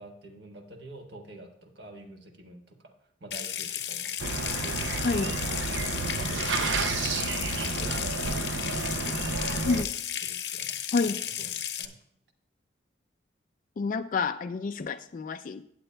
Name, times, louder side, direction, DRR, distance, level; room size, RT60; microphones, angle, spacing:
voice 1, 0.0-2.9 3.2-5.4 6.1-7.0 7.5-9.7 10.2-11.9, right 2 dB, 65° right, 4 dB, 1.3 m, -47 dB
Water tap faucet / Sink (filling or washing) / Trickle dribble, 3.3-11.9, left 10 dB, 65° left, 0.7 m, -34 dB
sound 1, 4.2-9.8, right 4 dB, 90° right, 0.6 m, -31 dB
voice 2, 5.0-5.3 9.6-9.9 10.9-11.2 13.8-15.6, left 4 dB, 45° left, 8 dB, 0.3 m, -28 dB
15.5 x 8.8 x 2.2 m, 0.73 s
head